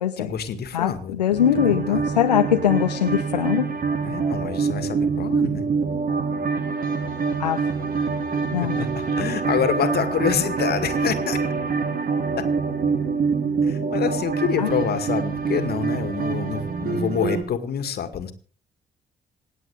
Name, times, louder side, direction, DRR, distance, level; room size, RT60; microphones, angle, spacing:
voice 1, 0.2-2.1 4.0-5.7 8.6-11.4 12.4-12.5 13.6-18.3, left 8 dB, 50° left, 10 dB, 2.1 m, -27 dB
voice 2, 1.2-3.7 7.4-7.6 8.5-8.7 14.6-14.7, left 10 dB, 80° left, 7 dB, 0.7 m, -21 dB
sound 1, 1.4-17.4, right 5 dB, 45° right, 2.5 m, -25 dB
27.0 x 9.2 x 3.5 m, 0.41 s
figure-of-eight pair, 40°, 20 cm